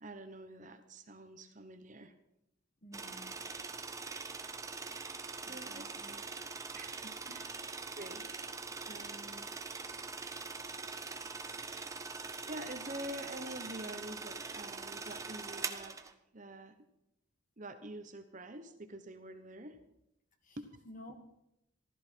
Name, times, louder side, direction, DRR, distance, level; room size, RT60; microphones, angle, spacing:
voice 1, 0.0-2.1 5.5-6.2 6.7-7.5 7.9-8.3 8.9-9.5 12.5-16.8 17.6-19.8 20.6-20.7, right 1 dB, 40° right, 8 dB, 1.1 m, -47 dB
voice 2, 2.8-3.4 5.5-6.2 7.3-7.4 20.4-20.6 20.9-21.1, equal, 40° left, 5 dB, 1.8 m, -52 dB
sound 1, 2.9-16.1, right 4 dB, 15° right, 0.6 m, -43 dB
15.0 x 13.0 x 4.6 m, 0.83 s
head